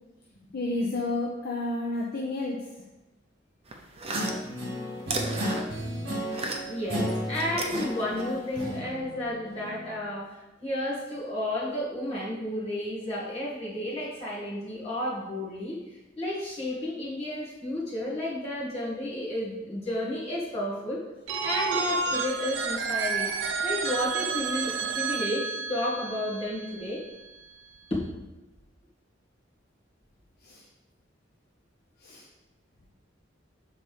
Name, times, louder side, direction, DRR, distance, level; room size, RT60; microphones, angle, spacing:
voice 1, 0.5-2.6 30.4-30.6 32.0-32.2, left 2 dB, 55° left, -2 dB, 0.8 m, -31 dB
sound 1, 3.6-6.9 7.1-8.6, right 2 dB, 30° right, 0.8 m, -35 dB
Guitar, 4.1-9.9, equal, 60° right, 1.8 m, -34 dB
voice 2, 6.7-21.0 21.4-23.3 23.6-27.0 27.9-28.0, left 1 dB, 35° left, -7 dB, 2.1 m, -32 dB
Telephone, 21.3-27.0, right 5 dB, 80° right, 0.7 m, -30 dB
6.6 x 4.2 x 5.1 m, 1.1 s
head